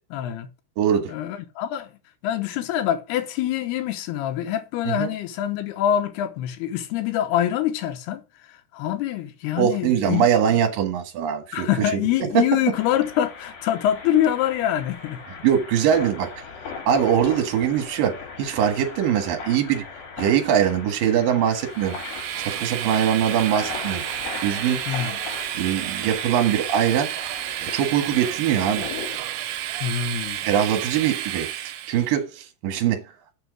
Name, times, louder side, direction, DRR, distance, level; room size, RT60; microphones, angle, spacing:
voice 1, 0.1-0.5 1.1-1.9 2.2-10.3 11.5-15.2 24.9-25.2 29.8-30.4, left 11 dB, 80° left, 2.8 m, -25 dB
voice 2, 0.8-1.1 4.8-5.1 9.6-11.7 11.9-12.0 15.4-16.3 16.9-19.8 20.2-22.0 22.4-24.0 24.4-24.8 25.2-25.3 25.5-27.1 27.6-28.9 30.4-31.5 31.9-33.0, right 9 dB, 65° right, 3.0 m, -22 dB
sound 1, 12.7-29.2, left 5 dB, 60° left, 3.8 m, -38 dB
Train, 21.7-32.1, right 12 dB, 80° right, 2.6 m, -31 dB
6.9 x 6.0 x 6.1 m
omnidirectional pair, 4.8 m